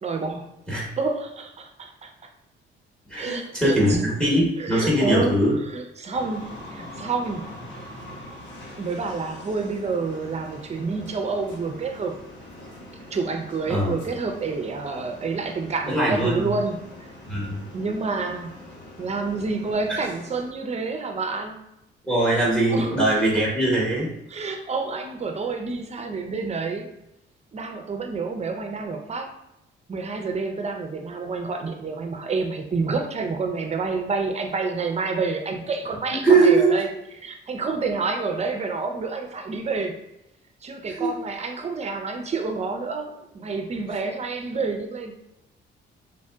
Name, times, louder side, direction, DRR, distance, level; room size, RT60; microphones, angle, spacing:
voice 1, 0.0-0.5 1.0-2.1 3.2-4.0 4.6-7.5 8.8-12.1 13.1-16.8 17.7-18.5 19.0-21.7 22.2-23.2 24.3-26.9 27.5-29.3 29.9-36.9 37.2-40.0 40.6-45.1, right 4 dB, 35° right, 4 dB, 0.5 m, -28 dB
voice 2, 3.1-5.6 13.7-13.9 15.9-16.5 17.3-17.6 19.9-20.0 22.1-24.1 36.2-36.7 40.9-41.1, right 2 dB, 5° left, -5 dB, 1.0 m, -21 dB
sound 1, 6.1-20.5, left 1 dB, 65° left, 0.9 m, -43 dB
3.1 x 2.6 x 2.2 m, 0.88 s
cardioid pair, 90°, 20 cm